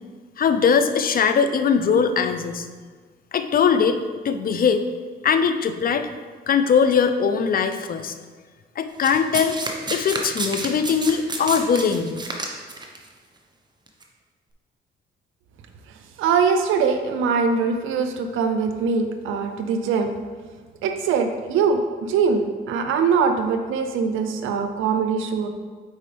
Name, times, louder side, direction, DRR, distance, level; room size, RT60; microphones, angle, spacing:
voice 1, 0.4-2.7 3.3-4.0 4.2-4.8 5.2-6.1 6.5-8.1 8.8-9.6 9.9-12.2, left 6 dB, 45° left, 9 dB, 0.5 m, -20 dB
Domestic sounds home sounds, 9.0-13.0 13.9-14.0, right 2 dB, 20° right, 0.9 m, -29 dB
voice 2, 16.2-20.1 20.8-25.5, right 5 dB, 85° right, 6 dB, 0.6 m, -22 dB
8.8 x 4.2 x 3.4 m, 1.5 s
cardioid pair, 90°, 20 cm